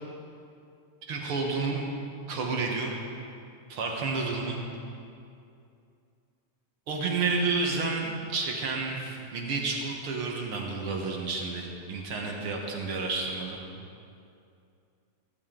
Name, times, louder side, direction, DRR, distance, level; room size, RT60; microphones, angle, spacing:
voice 1, 1.1-1.9 2.3-2.9 3.7-4.6 6.9-13.6, right 4 dB, 55° right, 0 dB, 2.0 m, -30 dB
16.0 x 13.5 x 3.9 m, 2.5 s
omnidirectional pair, 3.4 m